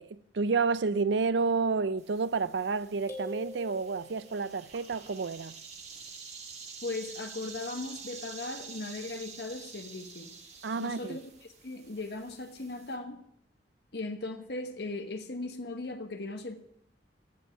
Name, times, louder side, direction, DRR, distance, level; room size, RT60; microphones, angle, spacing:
voice 1, 0.0-5.6 10.6-11.2, right 4 dB, 75° right, 0.5 m, -30 dB
sound 1, 2.0-13.0, right 5 dB, 40° right, 2.0 m, -48 dB
sound 2, 3.1-4.6, left 1 dB, 20° left, 2.0 m, -44 dB
voice 2, 6.8-10.3 10.8-13.2 13.9-16.6, left 2 dB, 65° left, 1.2 m, -38 dB
15.5 x 5.4 x 10.0 m
head